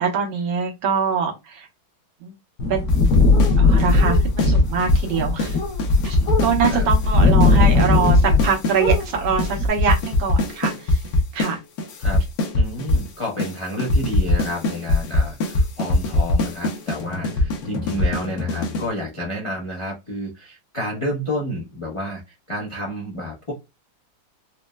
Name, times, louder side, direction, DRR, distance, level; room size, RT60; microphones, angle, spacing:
voice 1, 0.0-1.7 2.2-2.3 2.7-2.9 3.6-5.6 6.0-11.0 11.3-11.6, right 6 dB, 80° right, 0 dB, 1.7 m, -24 dB
sound 1, 2.6-8.5 8.8-9.7, left 3 dB, 90° left, 0.7 m, -19 dB
sound 2, 2.9-3.5 3.8-5.1 5.4-5.5 5.8-9.0 9.4-9.5 9.8-11.5 11.8-13.1 13.4-13.5 13.8-18.9, left 2 dB, 65° left, 1.0 m, -20 dB
voice 2, 12.5-22.2 22.5-23.5, equal, 45° left, -3 dB, 0.4 m, -30 dB
4.2 x 2.1 x 2.2 m, 0.22 s
omnidirectional pair, 2.2 m